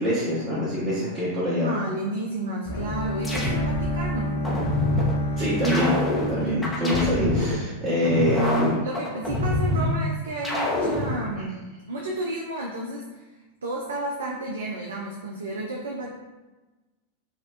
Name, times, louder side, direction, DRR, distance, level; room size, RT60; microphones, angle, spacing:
voice 1, 0.0-1.7 5.4-5.9 6.3-8.7, equal, 40° right, -10 dB, 1.1 m, -24 dB
voice 2, 1.6-4.4 8.8-11.6 11.9-13.2 13.6-16.1, right 2 dB, 65° right, -1 dB, 0.4 m, -32 dB
sound 1, 2.6-4.0 4.4-5.2 5.6-7.6 8.0-10.0 10.4-11.2, left 1 dB, 10° left, 0.7 m, -26 dB
Bowed string instrument, 2.7-7.6, equal, 65° left, 0.4 m, -30 dB
4.1 x 2.3 x 2.5 m, 1.2 s
figure-of-eight pair, 90°, 0 cm